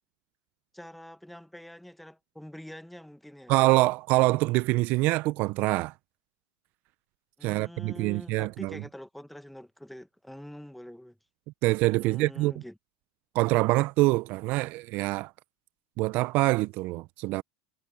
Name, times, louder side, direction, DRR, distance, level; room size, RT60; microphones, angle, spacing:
voice 1, 0.7-3.6 7.4-11.2 12.0-12.7, left 1 dB, ahead, 1.3 m, -45 dB
voice 2, 3.5-5.9 7.4-8.8 11.6-12.5 13.3-15.3 16.0-17.4, right 21 dB, 55° right, 0.5 m, -25 dB
hypercardioid pair, 100°, 4 cm